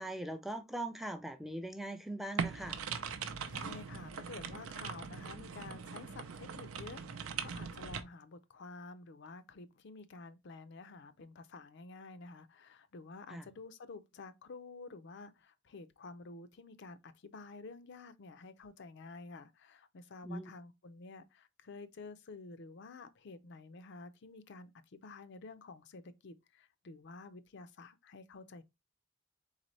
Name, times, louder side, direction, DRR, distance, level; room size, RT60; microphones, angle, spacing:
voice 1, 0.0-2.8 13.3-13.4 20.2-20.5, right 1 dB, ahead, 0.4 m, -41 dB
sound 1, 2.4-8.0, right 6 dB, 90° right, 0.6 m, -41 dB
voice 2, 3.5-28.6, left 3 dB, 55° left, 0.5 m, -50 dB
4.0 x 3.6 x 3.1 m
head